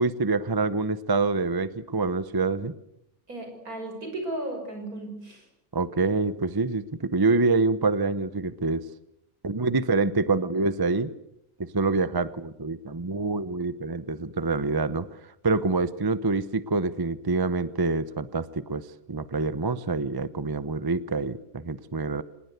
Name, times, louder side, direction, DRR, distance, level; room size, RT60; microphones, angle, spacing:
voice 1, 0.0-2.7 5.7-8.8 9.4-11.1 11.7-15.1 15.4-22.2, right 3 dB, 20° right, 15 dB, 0.7 m, -26 dB
voice 2, 3.3-5.4, right 1 dB, 70° right, 4 dB, 6.6 m, -35 dB
26.0 x 20.0 x 8.1 m, 0.80 s
omnidirectional pair, 1.6 m